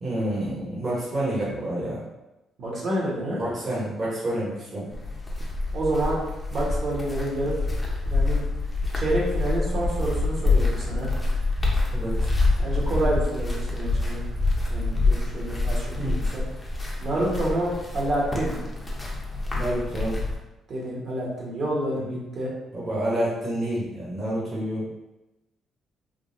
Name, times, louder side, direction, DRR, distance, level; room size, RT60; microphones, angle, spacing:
voice 1, 0.0-2.0 3.4-4.9 11.9-12.3 16.0-16.1 19.5-20.2 22.7-24.9, right 1 dB, 40° right, -8 dB, 1.1 m, -28 dB
voice 2, 2.6-3.4 5.7-6.2 6.5-7.5 8.0-8.4 8.9-11.1 12.6-14.3 14.7-16.4 17.0-18.6 20.7-22.5, right 1 dB, 60° right, -5 dB, 1.3 m, -28 dB
sound 1, 4.9-20.4, left 2 dB, 20° left, 0.8 m, -26 dB
3.7 x 2.3 x 2.6 m, 0.97 s
cardioid pair, 90°, 0 cm